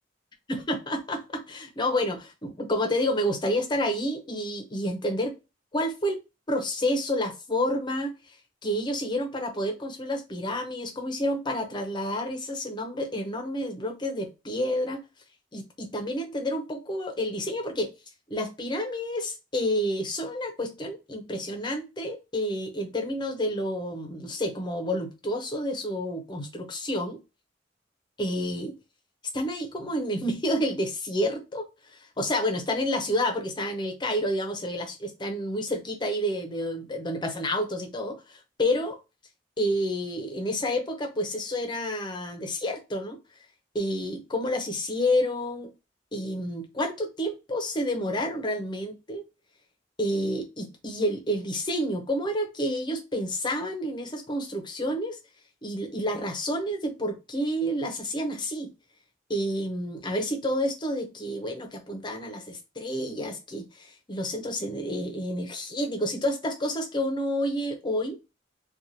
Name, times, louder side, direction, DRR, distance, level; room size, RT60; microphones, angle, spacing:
voice 1, 0.5-5.4 5.7-6.2 6.5-8.2 8.6-15.0 15.5-17.9 18.3-27.2 28.2-28.8 29.3-39.0 39.6-43.2 43.7-45.7 46.1-49.2 50.0-55.2 55.6-58.7 59.3-68.2, equal, 25° left, 0.6 m, -29 dB
2.8 x 2.2 x 2.7 m
head